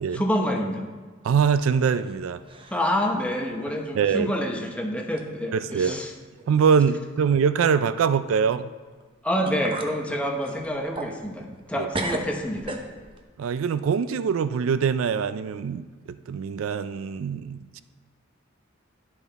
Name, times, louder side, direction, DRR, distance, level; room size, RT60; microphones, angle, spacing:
voice 1, 0.1-0.8 2.7-6.1 9.2-12.8, equal, 5° left, 1 dB, 0.9 m, -27 dB
voice 2, 1.2-2.4 3.9-4.3 5.5-6.0 6.5-8.7 11.8-11.9 13.4-17.8, right 6 dB, 80° right, 13 dB, 0.3 m, -23 dB
sound 1, 1.8-2.2 2.5-2.9 3.4-3.5 4.3-4.5 5.2-5.3 5.7-6.1 6.4-6.5 9.0-9.1 9.5-10.0 10.4-11.7 11.9-13.2, right 2 dB, 25° right, 0.7 m, -35 dB
11.0 x 5.8 x 4.0 m, 1.4 s
head